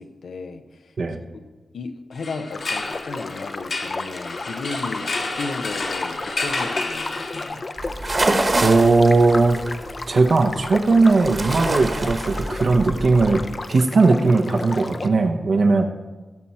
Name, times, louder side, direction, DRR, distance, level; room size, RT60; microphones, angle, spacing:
voice 1, 0.0-1.4 1.7-7.7, left 4 dB, 85° left, 7 dB, 0.8 m, -35 dB
sound 1, 2.1-7.8, left 3 dB, 70° left, 2.1 m, -30 dB
sound 2, 2.5-15.1, left 3 dB, 45° left, 0.6 m, -34 dB
sound 3, 7.8-13.5, right 2 dB, 40° right, 1.3 m, -27 dB
voice 2, 8.6-9.6 10.1-13.4 13.7-15.9, right 3 dB, 60° right, 4 dB, 0.8 m, -18 dB
16.5 x 6.0 x 4.3 m, 1.2 s
cardioid pair, 75°, 0 cm